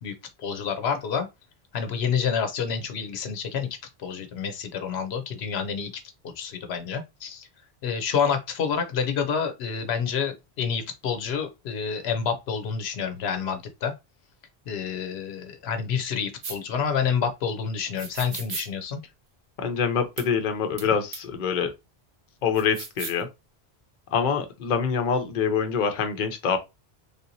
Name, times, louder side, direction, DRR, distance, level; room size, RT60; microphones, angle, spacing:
voice 1, 0.0-1.3 1.7-5.9 6.2-7.5 7.8-13.9 14.7-19.0 20.8-20.9, left 6 dB, 85° left, 0.9 m, -28 dB
sound 1, 16.4-16.6 18.0-18.7 20.2-20.3 20.8-20.9 21.1-21.2 22.6-23.2, right 4 dB, 60° right, 0.9 m, -35 dB
voice 2, 19.6-21.7 22.4-23.3 24.1-26.6, left 6 dB, 55° left, 0.7 m, -25 dB
3.4 x 2.8 x 2.6 m
omnidirectional pair, 1.0 m